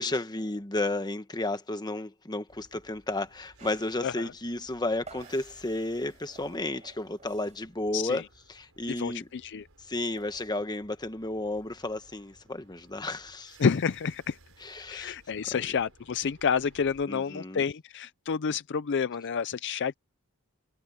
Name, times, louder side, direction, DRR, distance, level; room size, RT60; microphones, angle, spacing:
voice 1, 0.0-8.2 8.5-9.3 9.9-13.6 14.6-15.2 15.5-15.6 17.1-17.6, left 2 dB, 20° left, 1.2 m, -32 dB
sound 1, 2.5-17.0, right 2 dB, 65° right, 6.9 m, -60 dB
sound 2, 3.6-7.8 8.1-8.3 8.6-10.5, right 4 dB, 30° right, 5.0 m, -53 dB
voice 2, 8.9-9.7 13.6-14.4 14.9-19.9, left 6 dB, 55° left, 0.5 m, -29 dB
head